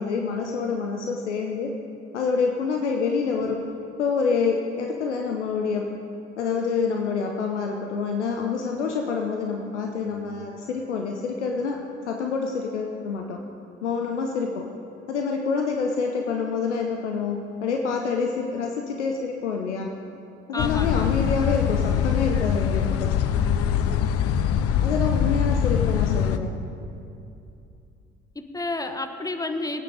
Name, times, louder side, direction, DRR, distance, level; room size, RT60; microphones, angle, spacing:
voice 1, 0.0-1.7 2.1-3.6 4.0-5.9 6.4-11.8 12.1-13.4 13.8-14.7 15.1-19.9 20.5-23.1 24.8-26.5, left 5 dB, 75° left, 2 dB, 0.9 m, -27 dB
voice 2, 20.5-21.1 28.3-29.8, left 2 dB, 10° left, 7 dB, 1.1 m, -30 dB
in the park in the evening, 20.6-26.4, left 8 dB, 40° left, 0.8 m, -23 dB
21.0 x 9.0 x 5.0 m, 2.7 s
figure-of-eight pair, 55°, 35 cm